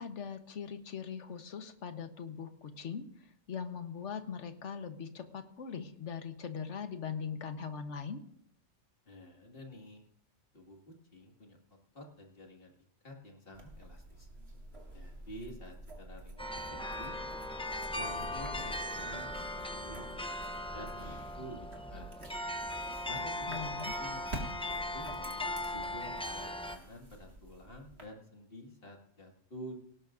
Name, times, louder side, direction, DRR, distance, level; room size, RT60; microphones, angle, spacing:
voice 1, 0.0-8.2 23.5-23.9, left 6 dB, 65° left, 8 dB, 1.4 m, -41 dB
voice 2, 9.1-10.0 10.5-11.6 11.9-12.7 13.0-14.3 14.9-17.2 17.9-22.1 23.1-23.6 24.0-29.8, equal, 45° left, 1 dB, 2.3 m, -50 dB
sound 1, 13.5-28.0, right 1 dB, 55° right, 2.4 m, -48 dB
sound 2, 16.4-26.8, left 1 dB, 5° left, 0.4 m, -38 dB
18.0 x 18.0 x 2.6 m, 0.68 s
omnidirectional pair, 1.3 m